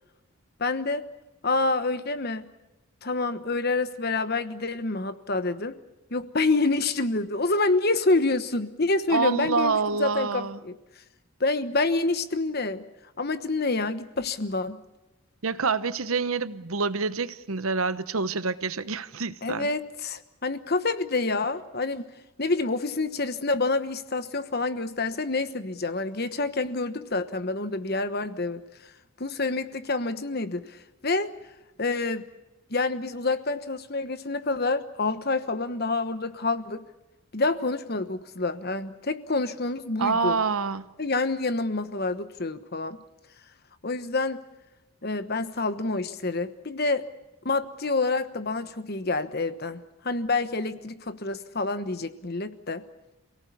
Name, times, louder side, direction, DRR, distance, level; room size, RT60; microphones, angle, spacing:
voice 1, 0.6-1.0 1.4-2.5 3.0-5.8 6.1-10.7 11.4-12.8 13.2-14.8 19.4-22.1 22.4-28.6 29.2-31.3 31.8-32.2 32.7-36.8 37.3-40.4 41.0-43.0 43.8-44.4 45.0-47.0 47.4-52.8, left 3 dB, 45° left, 11 dB, 1.2 m, -27 dB
voice 2, 9.1-10.6 15.4-19.7 40.0-40.8, right 4 dB, 75° right, 13 dB, 0.9 m, -27 dB
28.0 x 17.5 x 8.5 m, 1.0 s
head